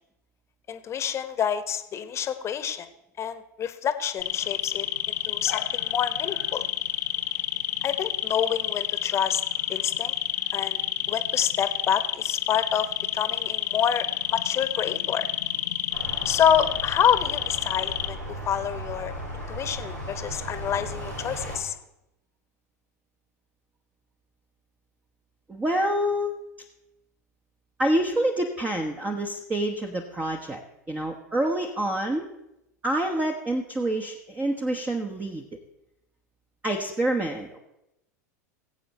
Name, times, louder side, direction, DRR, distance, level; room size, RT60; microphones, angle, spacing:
voice 1, 0.7-2.9 3.2-6.6 7.8-9.4 9.7-10.1 10.5-10.8 11.1-15.3 16.2-19.1 19.5-21.7, left 8 dB, 30° left, 11 dB, 1.1 m, -27 dB
sound 1, 4.2-18.1, left 12 dB, 70° left, 0.9 m, -29 dB
sound 2, 15.9-21.6, equal, 85° right, 3.2 m, -36 dB
voice 2, 25.5-26.3 27.8-30.6 30.9-32.3 32.8-35.4 36.6-37.6, right 1 dB, 15° right, 2 dB, 1.2 m, -27 dB
20.5 x 8.1 x 4.3 m, 0.87 s
figure-of-eight pair, 85°, 9 cm